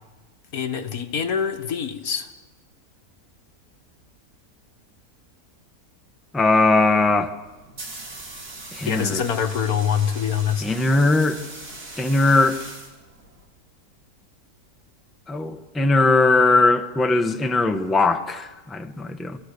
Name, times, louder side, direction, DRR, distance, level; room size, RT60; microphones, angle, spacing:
voice 1, 0.5-2.3 8.8-10.7, left 8 dB, 70° left, 1.7 m, -24 dB
voice 2, 6.3-7.3 8.7-9.2 10.6-11.4 12.0-12.6 15.3-19.4, left 2 dB, ahead, 1.0 m, -19 dB
sound 1, 7.4-13.4, right 2 dB, 75° right, 3.9 m, -40 dB
27.5 x 20.5 x 6.7 m
omnidirectional pair, 1.6 m